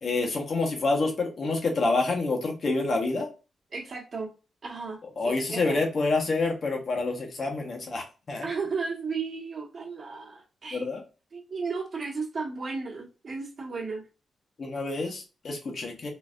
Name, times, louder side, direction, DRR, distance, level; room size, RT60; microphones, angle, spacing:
voice 1, 0.0-3.3 5.2-8.5 10.7-11.0 14.6-16.1, left 3 dB, 45° left, 1 dB, 0.9 m, -27 dB
voice 2, 3.7-4.3 4.6-5.0 5.2-5.8 8.4-10.9 11.3-14.0, right 4 dB, 45° right, -2 dB, 1.2 m, -34 dB
3.9 x 2.4 x 2.5 m, 0.32 s
wide cardioid pair, 135°, 0 cm